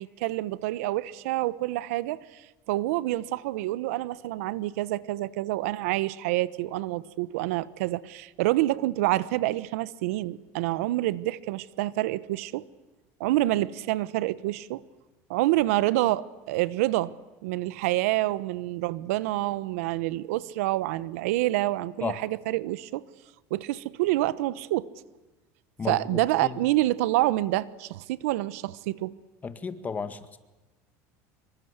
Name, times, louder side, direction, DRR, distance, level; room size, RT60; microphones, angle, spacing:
voice 1, 0.0-2.4 2.7-12.7 13.2-14.8 15.3-17.1 17.4-23.0 23.5-24.9 25.9-29.1, right 17 dB, 85° right, 1.0 m, -27 dB
voice 2, 25.8-26.6 29.4-30.4, left 5 dB, 20° left, 1.8 m, -34 dB
26.0 x 23.5 x 8.2 m
supercardioid pair, 130°, 8 cm